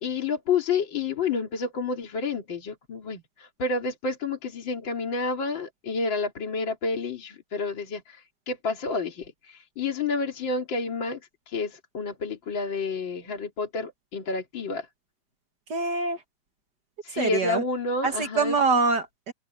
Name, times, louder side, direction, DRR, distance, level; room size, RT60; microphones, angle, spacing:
voice 1, 0.0-11.2 11.5-14.9 17.0-18.5, left 4 dB, 40° left, 3.0 m, -29 dB
voice 2, 15.7-16.2 17.1-17.6 18.0-19.3, right 4 dB, 50° right, 1.3 m, -25 dB
open air
omnidirectional pair, 3.6 m